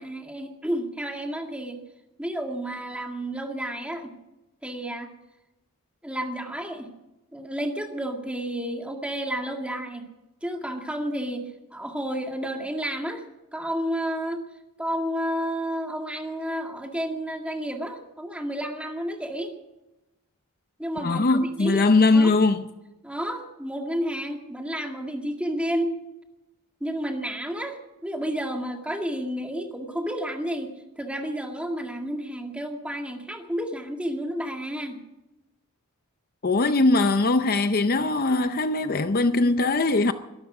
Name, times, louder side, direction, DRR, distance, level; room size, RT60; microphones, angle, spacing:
voice 1, 0.0-1.8 2.2-4.2 4.6-5.1 6.0-6.9 7.3-10.1 10.4-13.2 13.5-14.4 14.8-19.5 20.8-22.4 23.0-25.9 26.8-35.0, equal, 5° right, 2.0 m, -31 dB
voice 2, 21.0-22.6 36.4-40.1, left 3 dB, 45° left, 0.6 m, -21 dB
22.0 x 12.5 x 4.9 m
head